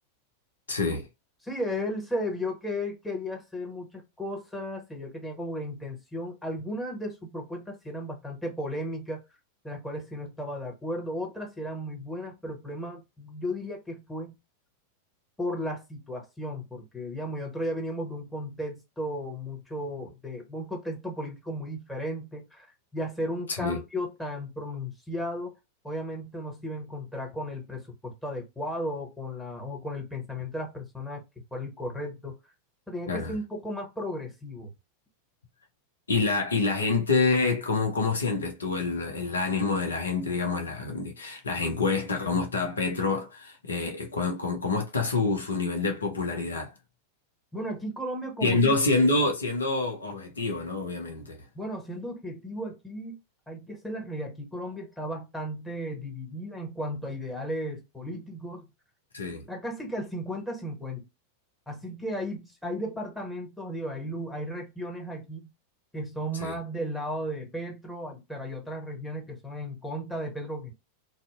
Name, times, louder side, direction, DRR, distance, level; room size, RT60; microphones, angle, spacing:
voice 1, 0.7-1.0 23.5-23.8 33.1-33.3 36.1-46.7 48.4-51.4 59.1-59.5 66.4-66.5, left 3 dB, 70° left, 0.6 m, -27 dB
voice 2, 1.4-9.2 9.6-14.4 15.4-22.7 22.9-25.5 25.8-31.2 31.5-32.4 32.9-34.7 47.5-48.7 51.5-53.2 53.5-58.7 59.5-61.1 61.7-65.5 65.9-70.7, equal, 5° left, 1.0 m, -35 dB
2.6 x 2.0 x 2.4 m
figure-of-eight pair, 90°, 0 cm